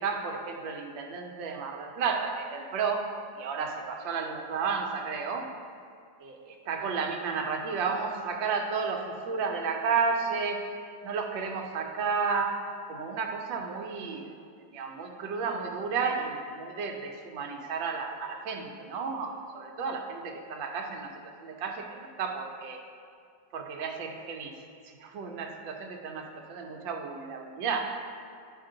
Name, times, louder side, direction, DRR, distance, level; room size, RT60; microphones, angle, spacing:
voice 1, 0.0-3.1 3.4-5.4 6.2-10.7 11.0-12.6 12.9-14.3 14.7-21.1 21.4-22.8 23.5-24.5 25.0-27.9, right 5 dB, 80° right, 3 dB, 1.5 m, -32 dB
11.0 x 5.3 x 3.8 m, 2.3 s
omnidirectional pair, 2.0 m